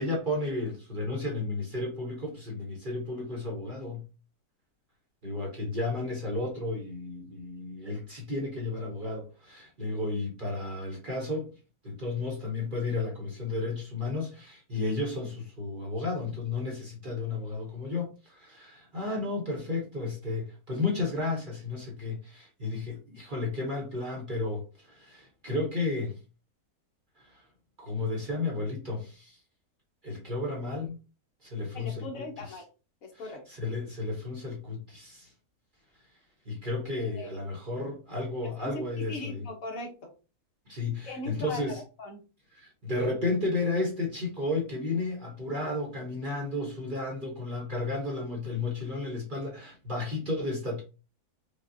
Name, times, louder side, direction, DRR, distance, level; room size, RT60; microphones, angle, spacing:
voice 1, 0.0-4.1 5.2-11.5 11.8-26.2 27.2-27.4 27.8-29.4 30.0-31.0 31.4-32.6 33.5-35.3 36.5-39.4 40.7-41.8 42.5-50.8, left 2 dB, 40° right, 0.9 m, -33 dB
voice 2, 31.7-32.7 33.0-33.4 37.0-37.3 38.4-40.1 41.0-41.7 42.0-42.2, left 2 dB, 65° left, 1.2 m, -39 dB
4.9 x 2.3 x 2.6 m
omnidirectional pair, 1.6 m